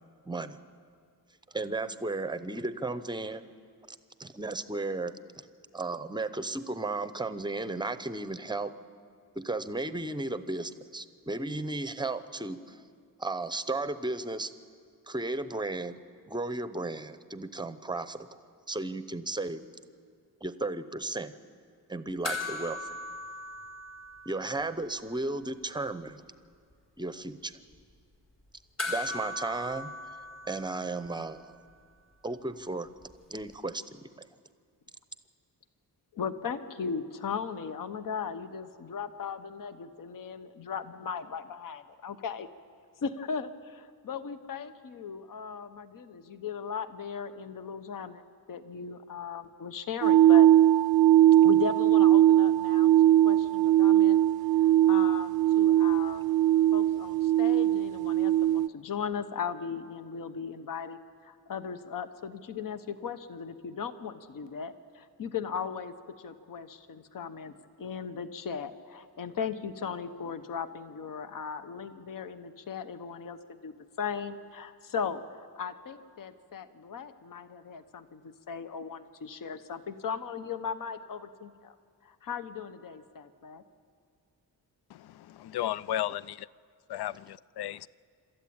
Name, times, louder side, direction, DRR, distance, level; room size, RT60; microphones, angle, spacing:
voice 1, 0.3-0.6 1.5-3.5 4.2-5.1 5.7-8.7 9.4-12.8 13.2-14.5 15.1-16.0 16.3-18.3 18.7-19.7 20.4-21.3 21.9-22.9 24.3-26.2 27.0-27.5 28.9-29.9 30.5-31.5 32.2-32.9 33.3-34.3, right 2 dB, 10° right, 12 dB, 0.7 m, -34 dB
sound 1, 22.2-24.9 25.2-25.3 28.8-31.4 33.5-33.6, left 2 dB, 40° left, 4.0 m, -38 dB
voice 2, 36.1-42.5 43.0-48.2 48.5-50.5 51.4-56.2 56.7-81.8 82.0-83.6, left 6 dB, 55° left, 11 dB, 0.9 m, -37 dB
sound 2, 50.0-58.7, right 13 dB, 70° right, 0.5 m, -21 dB
voice 3, 84.9-86.5 86.9-87.9, left 13 dB, 80° left, 20 dB, 0.5 m, -34 dB
27.0 x 13.5 x 8.7 m, 2.2 s
wide cardioid pair, 150°, 39 cm